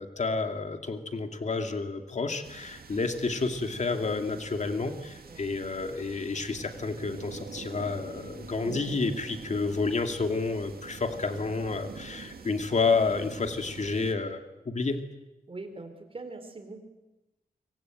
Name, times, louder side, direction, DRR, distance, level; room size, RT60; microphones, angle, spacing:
voice 1, 0.0-14.4 14.7-15.0, left 4 dB, 50° left, 6 dB, 2.4 m, -30 dB
sound 1, 2.4-14.1, right 5 dB, 90° right, 2.2 m, -45 dB
voice 2, 15.5-16.8, right 3 dB, 35° right, 7 dB, 4.0 m, -42 dB
24.5 x 24.0 x 9.2 m, 1.0 s
wide cardioid pair, 140°, 15 cm